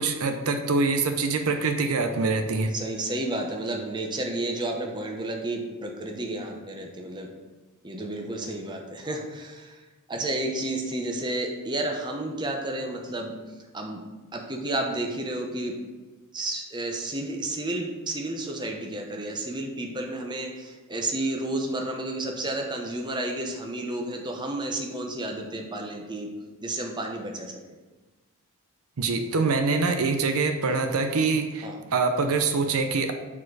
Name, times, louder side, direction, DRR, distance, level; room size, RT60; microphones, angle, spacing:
voice 1, 0.0-2.7 29.0-33.1, right 4 dB, 75° right, 6 dB, 0.6 m, -24 dB
voice 2, 2.7-7.3 7.8-9.8 10.1-13.3 13.7-14.0 14.3-15.8 16.3-26.3 26.6-27.5 31.6-31.8, right 1 dB, 20° right, 2 dB, 0.8 m, -31 dB
7.3 x 4.3 x 4.7 m, 1.2 s
head